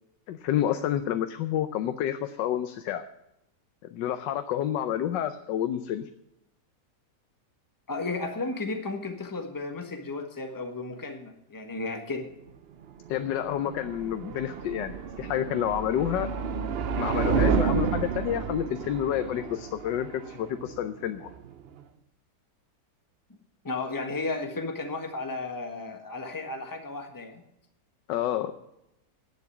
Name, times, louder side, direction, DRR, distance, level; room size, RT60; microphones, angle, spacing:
voice 1, 0.3-3.0 3.9-6.1 13.1-16.3 17.0-21.3 28.1-28.5, left 10 dB, 85° left, 9 dB, 1.4 m, -29 dB
voice 2, 7.9-12.3 23.6-27.4, left 3 dB, 15° left, 4 dB, 1.2 m, -34 dB
sound 1, 12.8-21.8, right 6 dB, 65° right, 0.6 m, -31 dB
11.0 x 8.0 x 8.2 m, 0.87 s
omnidirectional pair, 1.9 m